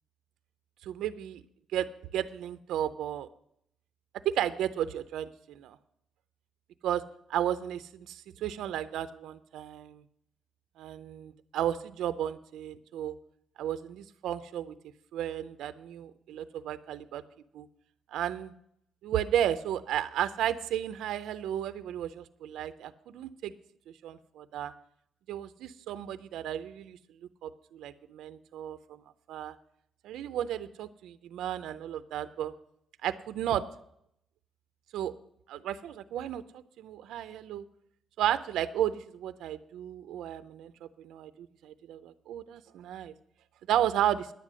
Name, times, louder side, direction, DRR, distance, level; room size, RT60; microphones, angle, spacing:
voice 1, 0.8-1.4 1.7-1.9 2.1-3.3 4.2-5.8 6.8-7.0 7.3-10.0 10.8-13.1 13.6-14.7 15.1-17.2 17.5-17.7 18.1-18.5 19.0-23.5 24.0-24.7 25.3-27.0 27.4-29.0 29.3-29.6 30.0-32.5 33.0-33.6 34.9-35.1 35.5-36.4 36.8-37.6 38.2-43.1 43.7-44.3, right 11 dB, 85° right, 12 dB, 0.6 m, -33 dB
10.5 x 9.2 x 6.2 m, 0.72 s
cardioid pair, 180°, 0 cm